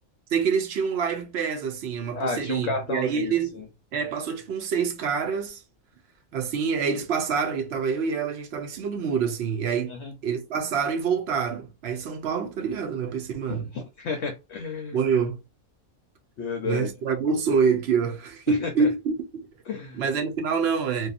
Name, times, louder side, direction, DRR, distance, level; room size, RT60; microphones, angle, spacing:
voice 1, 0.3-3.6 3.9-5.6 6.3-9.9 10.2-13.7 14.9-15.4 16.6-19.5 19.9-21.1, right 6 dB, 65° right, 0.7 m, -26 dB
voice 2, 2.2-3.7 9.9-10.1 13.5-15.0 16.4-16.9 18.5-18.9 19.7-20.0, left 4 dB, 65° left, 0.7 m, -32 dB
2.7 x 2.3 x 2.4 m
omnidirectional pair, 1.5 m